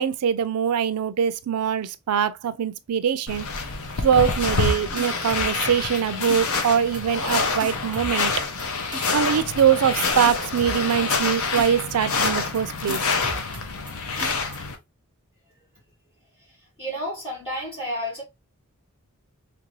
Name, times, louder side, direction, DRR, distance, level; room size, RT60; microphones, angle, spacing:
voice 1, 0.0-3.4 4.0-8.3 9.1-13.1, right 8 dB, 85° right, 0.4 m, -23 dB
sound 1, 3.3-14.8, left 4 dB, 65° left, 0.7 m, -27 dB
sound 2, 4.3-4.7 5.0-6.0 6.3-6.7 6.9-7.3 7.6-8.6 8.9-9.3 9.6-10.0 10.2-11.3 11.6-11.9 12.2-12.6 12.9-13.9 14.2-14.6, right 2 dB, 20° right, 0.9 m, -37 dB
voice 2, 16.8-18.2, equal, 25° left, 1.5 m, -30 dB
3.2 x 2.5 x 3.0 m
head